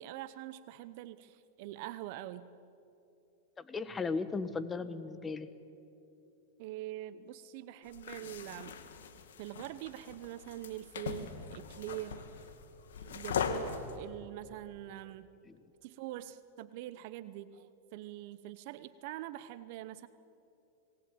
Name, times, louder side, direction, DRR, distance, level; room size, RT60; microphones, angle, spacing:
voice 1, 0.0-2.5 6.6-8.8 9.4-12.2 13.0-15.3 15.8-20.1, right 14 dB, 60° right, 14 dB, 0.8 m, -44 dB
voice 2, 3.6-5.5 15.4-15.6, left 4 dB, 20° left, 13 dB, 1.4 m, -36 dB
sound 1, 7.9-14.0, left 6 dB, 80° left, 2.1 m, -40 dB
26.5 x 19.0 x 9.4 m, 2.8 s
hypercardioid pair, 110°, 0 cm